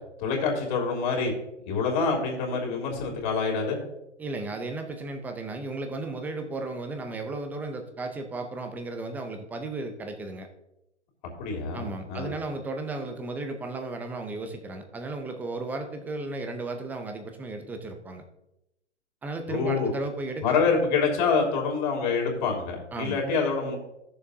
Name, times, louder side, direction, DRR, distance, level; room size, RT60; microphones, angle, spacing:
voice 1, 0.2-1.3 1.7-3.8 11.4-12.3 19.5-19.9 20.4-23.8, left 5 dB, 40° left, 1 dB, 3.0 m, -26 dB
voice 2, 4.2-10.5 11.7-18.2 19.2-20.6 22.9-23.2, right 2 dB, 5° right, 5 dB, 0.5 m, -34 dB
15.0 x 7.0 x 2.7 m, 0.88 s
figure-of-eight pair, 125°, 36 cm